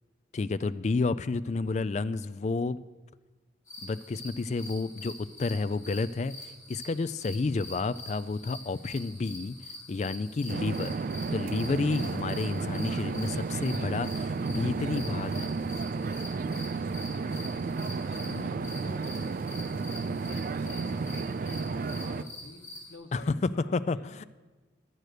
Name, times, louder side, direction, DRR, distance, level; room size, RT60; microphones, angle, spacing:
voice 1, 0.3-2.8 3.8-9.5 9.9-11.0 11.3-15.5 18.2-18.8 23.1-24.2, left 3 dB, 35° left, 14 dB, 0.3 m, -31 dB
sound 1, 3.7-22.9, left 1 dB, 15° left, 4.1 m, -46 dB
sound 2, 10.5-22.2, right 4 dB, 45° right, 0.3 m, -32 dB
voice 2, 11.0-11.6 17.3-19.8 20.2-24.1, left 2 dB, 75° left, 5 dB, 1.2 m, -49 dB
12.5 x 7.8 x 6.6 m, 1.3 s
head